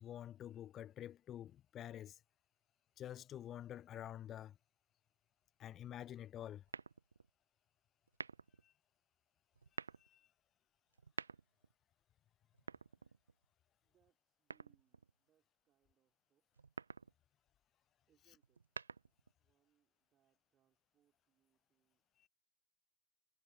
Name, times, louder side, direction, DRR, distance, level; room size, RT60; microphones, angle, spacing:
voice 1, 0.0-2.2 3.0-4.6 5.6-6.6 8.6-8.7 10.0-10.3, left 11 dB, 30° left, 0.7 m, -48 dB
sound 1, 6.7-7.3 8.1-8.6 9.5-10.1 10.9-11.7 12.5-13.4 14.5-15.1 16.5-17.1 18.4-19.3, right 5 dB, 75° right, 0.6 m, -49 dB
voice 2, 13.8-16.7 18.1-18.8 19.4-22.0, right 10 dB, 30° right, 5.7 m, -80 dB
figure-of-eight pair, 90°, 0 cm